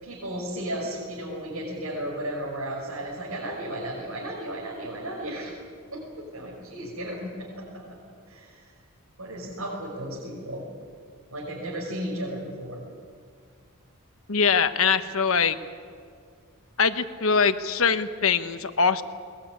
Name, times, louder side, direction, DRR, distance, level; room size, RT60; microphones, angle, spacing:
voice 1, 0.0-5.6 5.9-7.9 8.3-8.6 9.2-10.6 11.3-12.8, right 1 dB, 80° right, -4 dB, 5.9 m, -34 dB
voice 2, 14.3-15.6 16.8-19.0, left 5 dB, 65° left, 10 dB, 1.2 m, -22 dB
21.5 x 21.0 x 9.6 m, 2.1 s
head